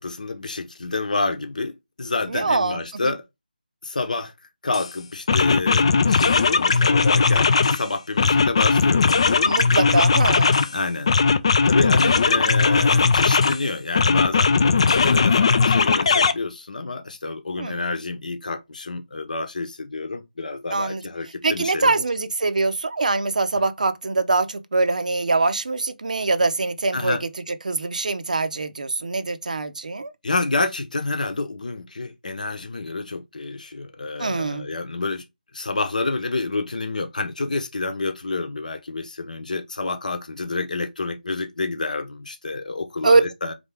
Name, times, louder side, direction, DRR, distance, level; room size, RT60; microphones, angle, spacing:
voice 1, 0.0-3.2 3.8-4.3 4.6-9.4 10.4-11.1 11.7-21.9 26.9-27.2 30.2-35.2 35.5-43.5, left 3 dB, 55° left, 0.9 m, -28 dB
voice 2, 2.3-3.1 9.4-10.6 17.6-17.9 20.7-21.0 21.4-30.1 34.2-34.7 43.0-43.2, right 3 dB, 55° right, 0.6 m, -23 dB
sound 1, 4.7-4.9 5.3-7.8 8.2-10.7 11.1-13.6 14.0-16.3, left 4 dB, 35° left, 0.4 m, -18 dB
4.0 x 3.4 x 3.4 m
figure-of-eight pair, 160°, 5 cm